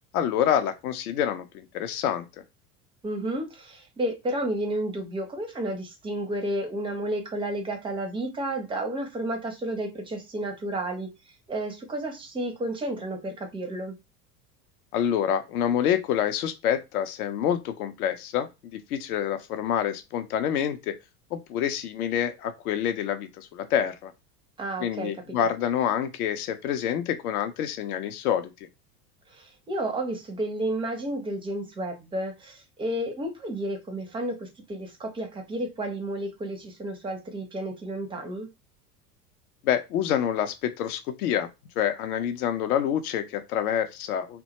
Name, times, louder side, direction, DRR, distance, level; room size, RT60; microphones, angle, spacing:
voice 1, 0.1-2.2 14.9-21.0 21.3-24.1 24.8-28.5 39.6-41.5 41.8-44.4, left 9 dB, 65° left, 0.6 m, -27 dB
voice 2, 3.0-11.1 11.5-14.0 24.6-25.4 29.3-38.5, right 1 dB, 10° right, 0.5 m, -31 dB
2.2 x 2.1 x 2.8 m
figure-of-eight pair, 80°, 48 cm